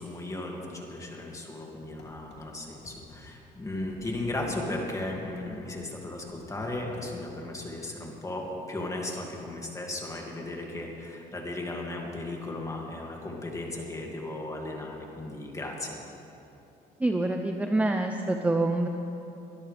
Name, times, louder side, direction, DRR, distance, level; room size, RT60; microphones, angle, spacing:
voice 1, 0.0-16.0, left 2 dB, 20° left, -1 dB, 2.5 m, -36 dB
sound 1, 2.0-2.4 2.8-3.2 3.7-4.5 5.1-5.5 6.3-7.1, left 3 dB, 80° left, 2.8 m, -49 dB
voice 2, 17.0-18.9, right 2 dB, 10° right, 5 dB, 0.6 m, -26 dB
23.0 x 12.5 x 3.5 m, 2.9 s
cardioid pair, 110°, 17 cm